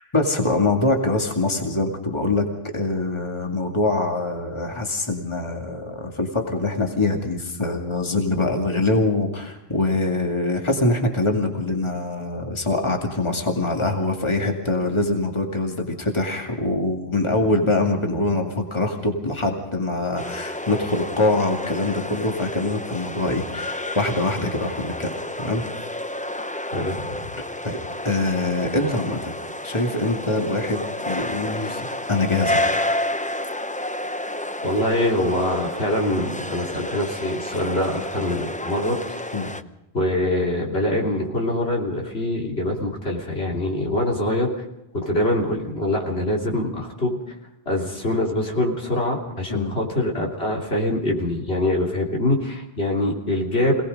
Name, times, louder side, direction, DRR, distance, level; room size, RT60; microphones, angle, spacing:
voice 1, 0.0-25.1 25.4-25.6 27.6-27.8 28.0-29.3 29.6-32.7 39.3-39.5 49.5-49.7, left 2 dB, 25° left, 2 dB, 2.4 m, -24 dB
sound 1, 20.2-39.6, left 1 dB, 10° left, 0.5 m, -30 dB
voice 2, 26.7-27.3 34.6-39.3 39.9-44.5 45.0-47.2 47.7-53.8, left 1 dB, 75° left, -1 dB, 3.6 m, -24 dB
26.5 x 18.5 x 5.3 m, 0.91 s
omnidirectional pair, 1.1 m